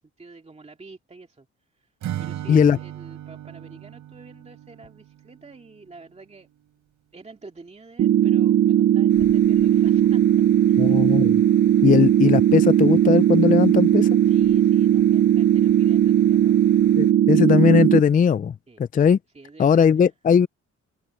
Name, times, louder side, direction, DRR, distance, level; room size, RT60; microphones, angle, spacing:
voice 1, 0.0-1.5 1.7-1.9 2.2-6.5 7.1-10.3 10.7-11.2 14.2-16.6 18.7-18.8 19.3-20.1, right 3 dB, 20° right, 2.3 m, -46 dB
Acoustic guitar / Strum, 2.0-5.9, right 12 dB, 75° right, 5.0 m, -36 dB
sound 1, 8.0-18.0, right 11 dB, 50° right, 0.6 m, -18 dB
sound 2, 9.1-17.1, left 14 dB, 85° left, 7.8 m, -48 dB
voice 2, 10.8-11.4 11.8-14.2 17.0-18.5 18.9-19.2 19.6-20.5, left 7 dB, 30° left, 0.4 m, -18 dB
cardioid pair, 90°, 30 cm